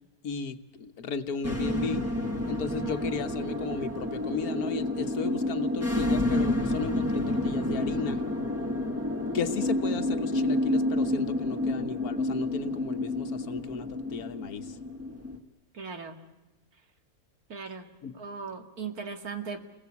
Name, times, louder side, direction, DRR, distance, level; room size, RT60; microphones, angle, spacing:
voice 1, 0.2-2.1 2.5-8.2 9.3-14.8 18.0-18.1, left 6 dB, 90° left, 9 dB, 1.6 m, -35 dB
sound 1, 1.4-15.4, left 1 dB, 10° right, 1.7 m, -29 dB
voice 2, 15.7-16.2 17.5-17.9 18.1-19.6, right 5 dB, 85° right, 5 dB, 2.7 m, -38 dB
29.5 x 21.0 x 8.3 m, 1.1 s
omnidirectional pair, 1.5 m